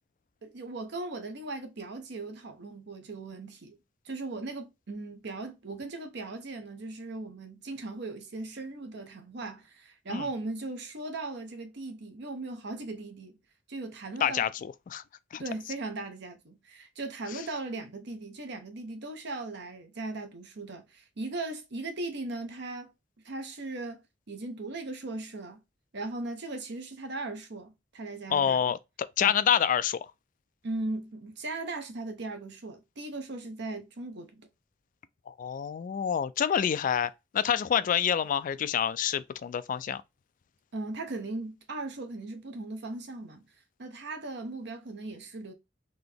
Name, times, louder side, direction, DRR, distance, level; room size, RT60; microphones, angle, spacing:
voice 1, 0.4-3.8 4.0-13.4 13.7-14.4 15.3-22.9 23.2-25.6 25.9-28.6 29.2-29.3 30.6-34.5 40.7-43.4 43.8-45.5, right 2 dB, 65° right, 0.9 m, -38 dB
voice 2, 14.2-15.0 15.3-15.4 17.3-17.4 28.3-30.1 35.3-40.0, left 8 dB, 45° left, 0.3 m, -27 dB
3.9 x 2.9 x 3.4 m
head